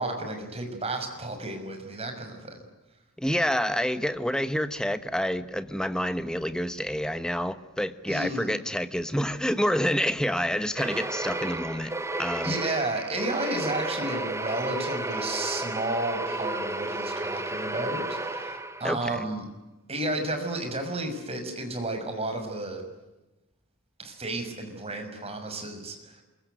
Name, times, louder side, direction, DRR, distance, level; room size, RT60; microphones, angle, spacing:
voice 1, 0.0-2.7 8.1-8.6 12.4-19.5 19.9-22.8 24.0-26.2, right 2 dB, 30° right, 5 dB, 6.3 m, -32 dB
voice 2, 3.2-11.9 12.2-12.5 18.8-19.2, equal, 5° left, 11 dB, 1.3 m, -28 dB
sound 1, 10.8-19.0, right 2 dB, 15° right, 1.6 m, -32 dB
28.0 x 23.0 x 9.3 m, 1.1 s
head